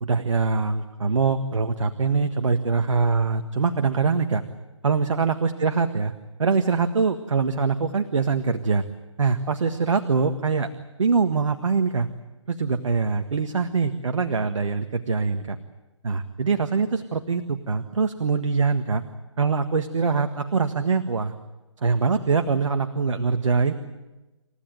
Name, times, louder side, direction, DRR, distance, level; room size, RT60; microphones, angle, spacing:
voice 1, 0.0-4.4 4.8-6.1 6.4-8.8 9.2-10.7 11.0-12.1 12.5-15.6 16.0-19.0 19.4-21.3 21.8-23.7, right 4 dB, 75° right, 8 dB, 1.6 m, -23 dB
28.5 x 15.5 x 9.2 m, 1.1 s
figure-of-eight pair, 150°, 16 cm